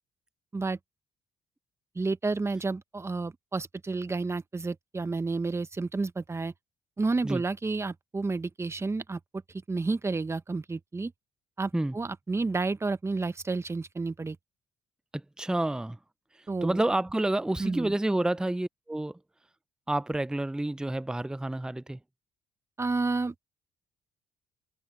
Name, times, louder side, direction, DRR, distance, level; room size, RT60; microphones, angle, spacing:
voice 1, 1.9-6.5 7.0-9.2 9.7-11.1 11.6-14.4 16.5-16.8 17.6-17.9 22.8-23.3, right 3 dB, 20° right, 1.1 m, -30 dB
voice 2, 15.1-16.0 16.6-19.2 19.9-22.0, right 1 dB, 5° right, 0.6 m, -29 dB
open air
cardioid pair, 80°, 12 cm